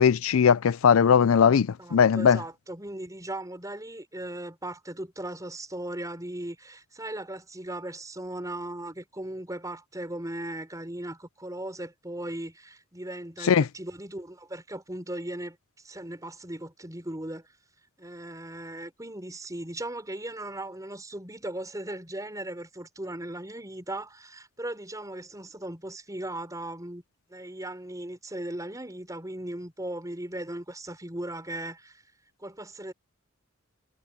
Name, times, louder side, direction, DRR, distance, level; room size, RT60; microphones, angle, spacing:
voice 1, 0.0-2.4 13.4-13.7, left 7 dB, 90° left, 0.4 m, -19 dB
voice 2, 1.8-15.6 15.8-17.5 18.0-27.0 27.3-32.0 32.4-32.9, right 1 dB, 15° right, 4.7 m, -37 dB
head